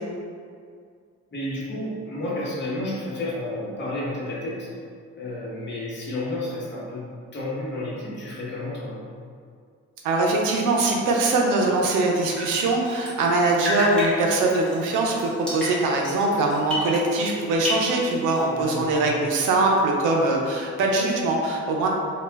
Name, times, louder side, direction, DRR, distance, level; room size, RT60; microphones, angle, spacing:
voice 1, 1.3-4.7 5.1-7.0 7.3-9.0 18.5-19.1, left 1 dB, 35° left, -7 dB, 1.0 m, -31 dB
voice 2, 10.0-21.9, right 2 dB, 90° right, 0 dB, 0.5 m, -22 dB
Drip, 12.1-13.3 13.6-17.3 17.6-18.6, left 2 dB, 5° left, 0.9 m, -32 dB
2.3 x 2.1 x 3.3 m, 2.2 s
cardioid pair, 90°, 30 cm